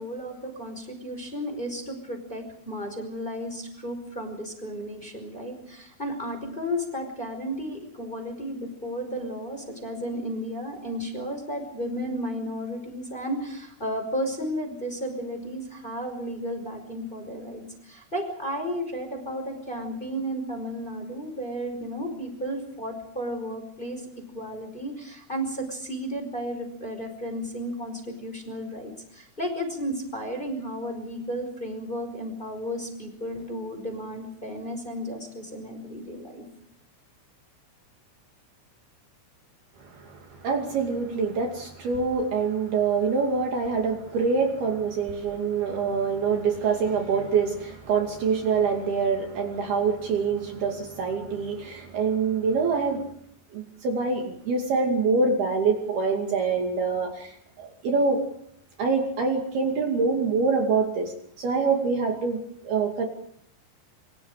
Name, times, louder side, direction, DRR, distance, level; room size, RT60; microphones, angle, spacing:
voice 1, 0.0-24.0 24.3-36.4, equal, 10° left, 5 dB, 4.8 m, -33 dB
voice 2, 39.8-53.1 53.5-58.2 58.8-63.1, right 4 dB, 55° right, 3 dB, 4.1 m, -25 dB
27.5 x 25.0 x 5.1 m, 0.68 s
omnidirectional pair, 5.8 m